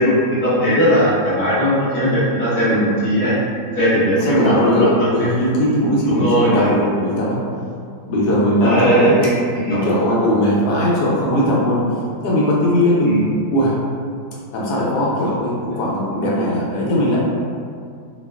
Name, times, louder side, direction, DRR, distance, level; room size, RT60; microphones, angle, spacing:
voice 1, 0.0-3.3 3.8-5.1 6.1-6.7 8.6-9.8 13.0-13.2, equal, 15° left, -12 dB, 0.4 m, -18 dB
voice 2, 4.2-4.9 5.1-7.4 8.1-9.1 9.7-11.8 12.2-13.1 13.5-13.7 14.5-17.2, equal, 75° left, -6 dB, 1.1 m, -18 dB
2.8 x 2.4 x 2.2 m, 2.2 s
omnidirectional pair, 1.8 m